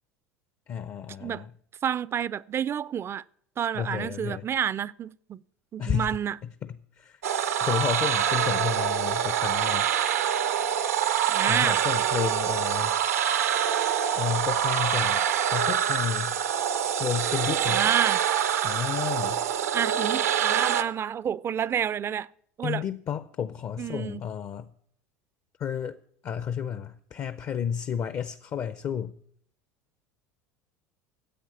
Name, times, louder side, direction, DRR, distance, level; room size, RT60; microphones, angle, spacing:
voice 1, 0.7-1.5 3.7-4.5 5.8-6.2 6.6-7.2 7.6-9.9 11.5-13.1 14.1-15.2 15.5-16.4 17.0-17.8 18.6-19.4 22.6-24.7 25.6-26.0 26.2-29.1, left 8 dB, 40° left, 0.6 m, -31 dB
voice 2, 1.8-3.2 3.6-5.4 5.7-6.4 11.3-11.8 17.7-18.3 19.7-22.3 22.6-22.8 23.8-24.2, right 9 dB, 30° right, 0.4 m, -29 dB
sound 1, 7.2-20.8, right 9 dB, 80° right, 0.8 m, -25 dB
10.0 x 8.2 x 8.9 m
hypercardioid pair, 80°, 8 cm